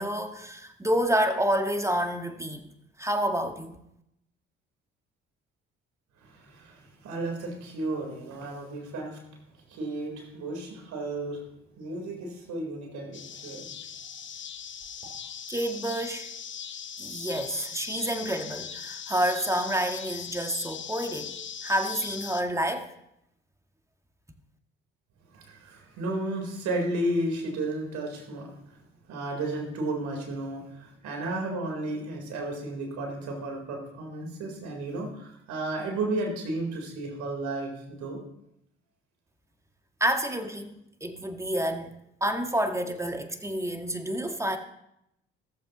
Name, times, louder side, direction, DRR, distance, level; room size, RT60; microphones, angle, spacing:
voice 1, 0.0-2.7 3.0-3.8 15.5-16.3 17.0-22.9 40.0-41.9 42.2-44.6, right 1 dB, 10° right, 6 dB, 1.7 m, -29 dB
voice 2, 6.2-9.2 9.5-11.4 11.8-13.7 25.3-28.8 29.1-38.2, right 2 dB, 65° right, 1 dB, 3.9 m, -33 dB
sound 1, 13.1-22.4, left 8 dB, 40° left, 0.9 m, -40 dB
14.5 x 14.0 x 3.0 m, 0.78 s
hypercardioid pair, 50°, 31 cm